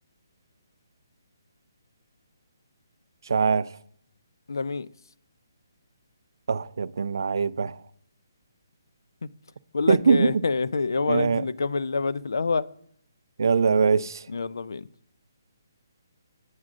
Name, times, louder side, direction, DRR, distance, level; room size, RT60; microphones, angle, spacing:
voice 1, 3.3-3.7 6.5-7.8 9.9-10.4 11.1-11.4 13.4-14.2, right 5 dB, 70° right, 0.3 m, -22 dB
voice 2, 4.5-4.9 9.7-12.7 14.3-14.9, left 4 dB, 80° left, 0.4 m, -27 dB
9.4 x 7.3 x 2.5 m
hypercardioid pair, 155°, 2 cm